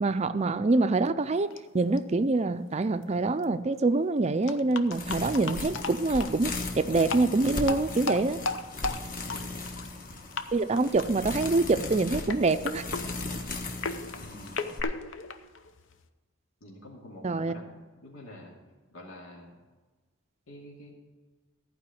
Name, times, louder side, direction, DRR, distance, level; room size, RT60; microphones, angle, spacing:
voice 1, 0.0-8.4 10.5-12.8 17.2-17.5, right 3 dB, 30° right, 12 dB, 0.4 m, -25 dB
sound 1, 1.5-1.6 2.0-2.1 3.0-3.1 3.4-3.5 4.5-6.4 7.0-7.3 7.6-10.1 10.3-10.5 10.8-11.1 11.4-11.8 12.2-16.1, left 4 dB, 65° left, 0.7 m, -35 dB
sound 2, 4.9-14.8, left 2 dB, 40° left, 1.3 m, -37 dB
voice 2, 9.2-9.7 14.1-14.7 16.6-17.6 18.0-18.5 18.9-19.6 20.5-20.9, left 1 dB, 90° left, -3 dB, 2.5 m, -47 dB
14.5 x 5.0 x 8.5 m, 1.3 s
head